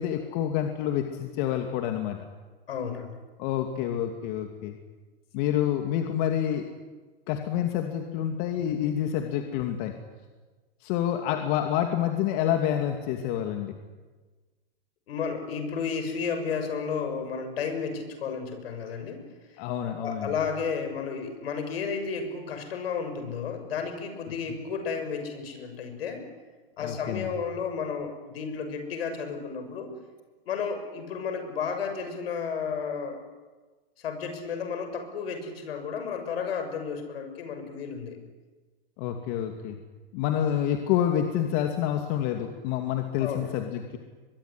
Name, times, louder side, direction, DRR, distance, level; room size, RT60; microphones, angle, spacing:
voice 1, 0.0-2.2 3.4-4.8 5.3-6.7 7.3-9.9 10.8-13.7 19.6-20.3 26.8-27.3 39.0-39.8 40.1-44.0, left 10 dB, 55° left, 5 dB, 2.6 m, -28 dB
voice 2, 2.7-3.2 15.1-19.2 19.5-19.6 20.0-26.2 26.8-29.9 30.4-33.2 34.0-38.2 43.2-43.6, left 6 dB, 80° left, 7 dB, 6.6 m, -32 dB
23.5 x 22.5 x 9.8 m, 1.3 s
hypercardioid pair, 115°, 30 cm